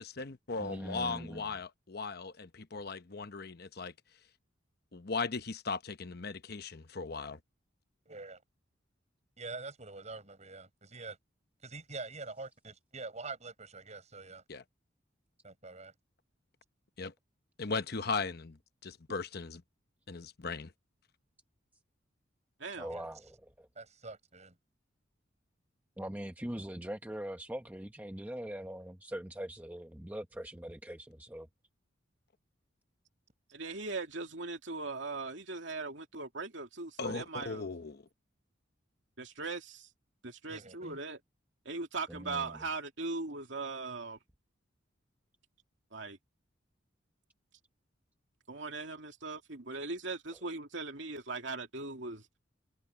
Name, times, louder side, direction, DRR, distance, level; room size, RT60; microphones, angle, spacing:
voice 1, 0.0-3.9 4.9-7.4 14.5-14.6 17.0-17.1 17.6-19.6 20.1-20.7 37.0-38.0, left 4 dB, 55° left, 0.9 m, -38 dB
voice 2, 0.6-1.5 22.8-23.7 26.0-31.5 42.1-42.6, right 1 dB, 10° right, 0.9 m, -42 dB
voice 3, 8.1-8.4 9.4-11.2 11.6-14.4 15.4-15.9 22.9-23.1 23.8-24.5 40.5-41.0, right 3 dB, 35° right, 7.9 m, -45 dB
voice 4, 33.5-37.7 39.2-39.9 40.2-41.2 41.6-44.2 45.9-46.2 48.5-52.3, right 3 dB, 70° right, 2.6 m, -39 dB
head